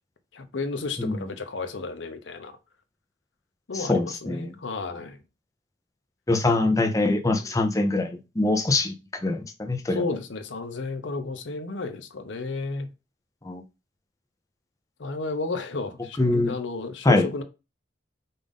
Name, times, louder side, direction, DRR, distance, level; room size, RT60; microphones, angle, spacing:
voice 1, 0.3-2.6 3.7-5.2 9.9-12.9 15.0-17.4, left 3 dB, 65° left, 0.7 m, -32 dB
voice 2, 3.7-4.5 6.3-8.9 9.2-10.0 13.4-13.6 16.2-16.5 17.0-17.3, left 2 dB, 15° left, 0.6 m, -23 dB
5.3 x 2.6 x 3.6 m
head